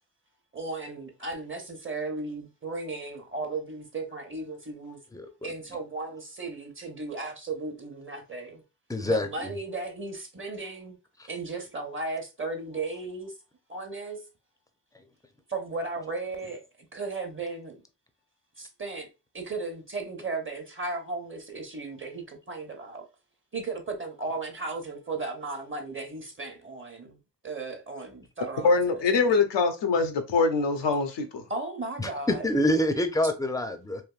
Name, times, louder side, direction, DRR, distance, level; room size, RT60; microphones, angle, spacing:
voice 1, 0.5-5.0 5.4-8.6 9.1-11.0 11.3-13.3 13.7-14.2 15.5-16.6 16.9-17.8 18.6-19.1 19.3-23.0 23.5-29.4 31.5-32.5 33.2-33.3, right 3 dB, 30° right, 1.0 m, -35 dB
voice 2, 8.9-9.3 32.0-34.0, left 1 dB, 10° left, 0.5 m, -26 dB
voice 3, 28.6-31.4, left 4 dB, 85° left, 0.7 m, -23 dB
3.4 x 2.6 x 2.4 m
cardioid pair, 55°, 42 cm